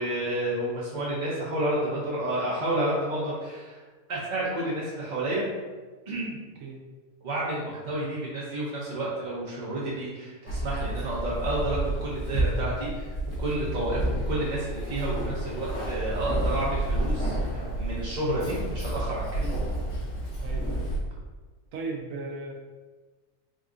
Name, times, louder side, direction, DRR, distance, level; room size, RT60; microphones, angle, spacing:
voice 1, 0.0-3.8 4.1-5.4 6.1-6.4 7.2-19.4, right 1 dB, 40° right, -7 dB, 0.7 m, -30 dB
Keys jangling, 10.5-21.0, right 1 dB, 60° left, 1.7 m, -30 dB
voice 2, 20.4-20.8 21.7-22.5, right 3 dB, 70° right, -1 dB, 1.0 m, -36 dB
4.0 x 2.5 x 3.7 m, 1.3 s
omnidirectional pair, 1.6 m